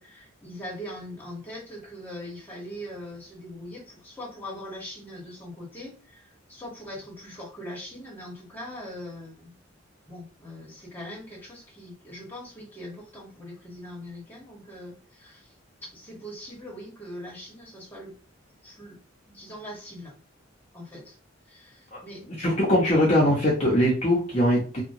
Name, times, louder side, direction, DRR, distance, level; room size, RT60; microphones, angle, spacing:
voice 1, 0.0-9.5 10.1-15.5 15.8-18.1 18.6-19.0 19.3-20.1 20.7-21.2 21.5-22.2, left 1 dB, 10° left, -4 dB, 1.1 m, -41 dB
voice 2, 22.4-24.8, equal, 35° left, -5 dB, 0.7 m, -21 dB
2.8 x 2.1 x 2.6 m, 0.36 s
head